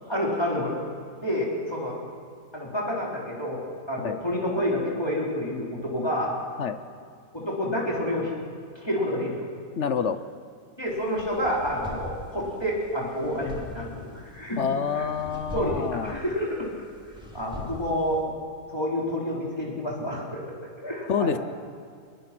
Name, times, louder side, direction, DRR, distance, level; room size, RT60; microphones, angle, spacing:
voice 1, 0.1-0.8 1.2-2.0 2.5-6.3 7.3-8.3 8.8-9.5 10.8-14.6 14.9-15.1 15.5-16.7 17.3-18.2 18.7-21.4, equal, 15° left, -4 dB, 4.0 m, -29 dB
voice 2, 9.8-10.2 14.6-16.2 21.1-21.4, left 6 dB, 55° left, 11 dB, 1.0 m, -27 dB
sound 1, 10.9-18.2, left 1 dB, 5° right, 3.0 m, -42 dB
22.0 x 21.5 x 6.1 m, 2.3 s
omnidirectional pair, 1.6 m